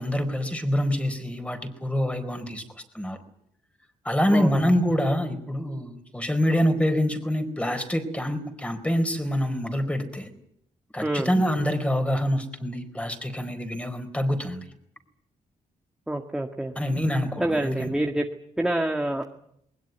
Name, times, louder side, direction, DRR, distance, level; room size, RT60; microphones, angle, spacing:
voice 1, 0.0-2.6 2.9-3.2 4.0-10.3 10.9-14.7 16.8-18.0, equal, 10° left, 8 dB, 4.4 m, -26 dB
voice 2, 16.1-16.7 17.4-18.3 18.6-19.2, right 1 dB, 5° right, 3 dB, 1.8 m, -26 dB
21.0 x 20.5 x 9.4 m, 0.72 s
cardioid pair, 110°, 13 cm